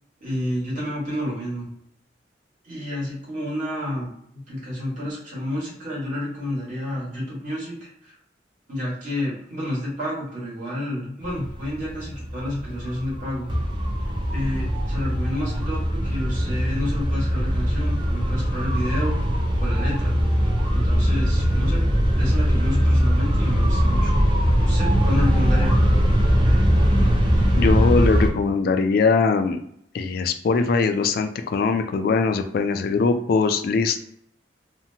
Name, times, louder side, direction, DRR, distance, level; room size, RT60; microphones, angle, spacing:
voice 1, 0.2-1.7 2.6-4.1 4.3-8.1 8.7-13.5 14.3-19.2 19.6-20.1 20.7-21.9 22.2-24.1 24.6-25.8, left 1 dB, 45° right, -6 dB, 1.4 m, -30 dB
sound 1, 11.2-28.3, equal, 30° right, 0.5 m, -21 dB
voice 2, 27.6-29.6 29.9-34.0, left 4 dB, 55° left, 7 dB, 0.3 m, -21 dB
2.8 x 2.1 x 2.7 m, 0.70 s
head